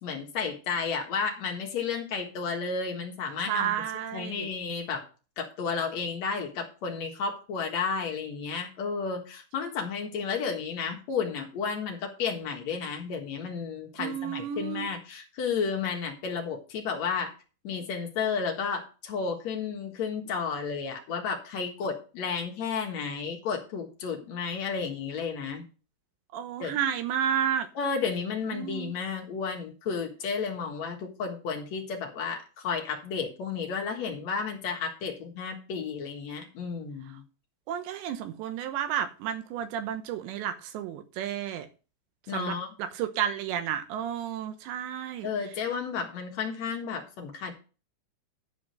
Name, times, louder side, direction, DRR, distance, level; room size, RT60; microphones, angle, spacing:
voice 1, 0.0-3.7 4.1-5.0 5.4-17.3 17.6-25.6 26.6-26.8 27.8-37.2 42.3-42.7 45.2-47.5, left 5 dB, 55° left, 2.0 m, -32 dB
voice 2, 3.5-4.5 14.0-14.9 26.3-27.7 28.5-28.9 37.7-41.7 42.3-45.3, right 9 dB, 80° right, 3.1 m, -31 dB
11.5 x 5.0 x 6.4 m
omnidirectional pair, 5.2 m